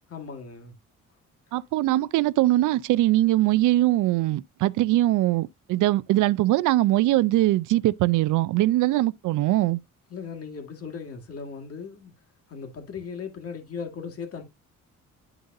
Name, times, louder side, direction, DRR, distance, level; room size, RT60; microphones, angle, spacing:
voice 1, 0.1-0.7 10.1-12.1 12.5-14.4, left 6 dB, 50° left, 2.0 m, -37 dB
voice 2, 1.5-9.8, right 16 dB, 85° right, 0.5 m, -22 dB
11.0 x 3.9 x 2.6 m
cardioid pair, 90°, 30 cm